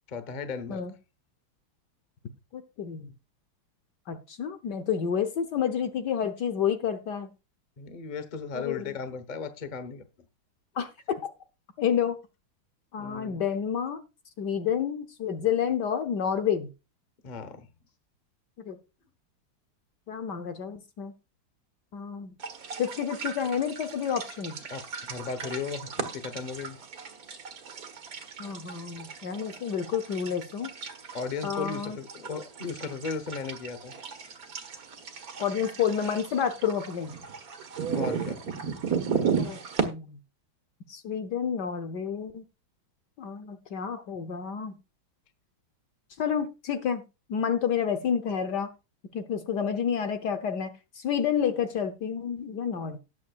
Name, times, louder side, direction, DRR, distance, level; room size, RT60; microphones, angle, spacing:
voice 1, 0.1-0.8 7.8-10.0 13.0-13.4 17.2-17.7 24.7-26.8 31.1-33.9 37.9-38.4, left 5 dB, 30° left, 0.8 m, -36 dB
voice 2, 2.5-3.1 4.1-7.3 8.5-8.9 10.8-11.2 11.8-12.2 12.9-14.0 14.4-16.7 18.6-18.8 20.1-21.1 21.9-22.3 22.8-24.6 28.4-30.7 31.4-32.0 35.4-37.1 39.4-40.2 40.9-42.4 43.2-44.8 46.2-47.0 47.3-48.7 49.1-53.0, left 8 dB, 65° left, 1.3 m, -29 dB
sound 1, 22.4-39.8, right 6 dB, 50° right, 1.7 m, -35 dB
18.5 x 7.5 x 2.4 m
omnidirectional pair, 2.3 m